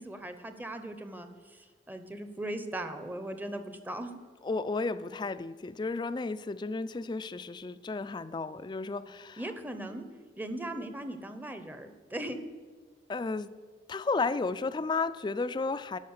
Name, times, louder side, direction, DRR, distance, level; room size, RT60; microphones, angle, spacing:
voice 1, 0.0-4.2 9.4-10.0 10.4-12.4, right 1 dB, 10° right, 8 dB, 0.7 m, -39 dB
voice 2, 4.4-9.4 13.1-13.5 13.9-16.0, left 3 dB, 25° left, 14 dB, 0.3 m, -33 dB
11.5 x 5.8 x 6.5 m, 1.5 s
head